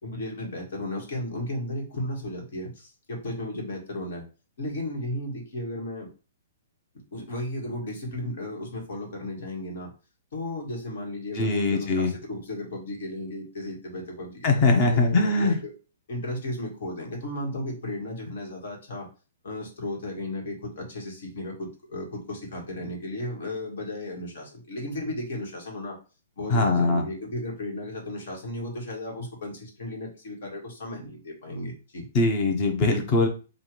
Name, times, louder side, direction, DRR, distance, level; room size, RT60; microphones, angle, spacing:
voice 1, 0.0-4.2 4.6-6.1 7.1-9.9 10.3-15.7 16.1-19.1 19.4-26.0 26.4-32.0, left 1 dB, 60° left, 0 dB, 1.7 m, -34 dB
voice 2, 11.3-12.1 14.4-15.6 26.5-27.0 32.1-33.3, left 3 dB, 30° left, 3 dB, 0.9 m, -22 dB
3.5 x 2.5 x 4.5 m, 0.34 s
hypercardioid pair, 160°, 0 cm